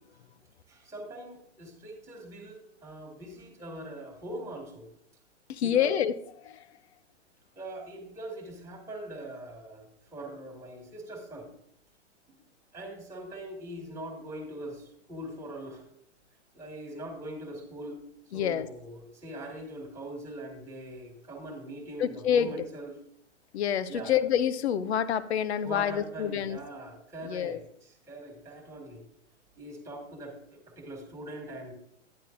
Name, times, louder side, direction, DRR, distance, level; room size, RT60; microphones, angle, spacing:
voice 1, 0.7-4.9 5.6-5.9 7.6-11.5 12.3-12.4 12.7-15.9 16.5-18.0 18.3-23.0 23.9-24.1 25.6-29.1 29.6-31.7, right 1 dB, 10° right, 1 dB, 1.9 m, -42 dB
voice 2, 5.5-6.1 6.4-6.8 18.3-18.7 22.0-22.5 23.5-26.6 27.2-27.6, left 9 dB, 60° left, 14 dB, 0.8 m, -27 dB
12.0 x 9.6 x 2.6 m, 0.71 s
figure-of-eight pair, 120°, 37 cm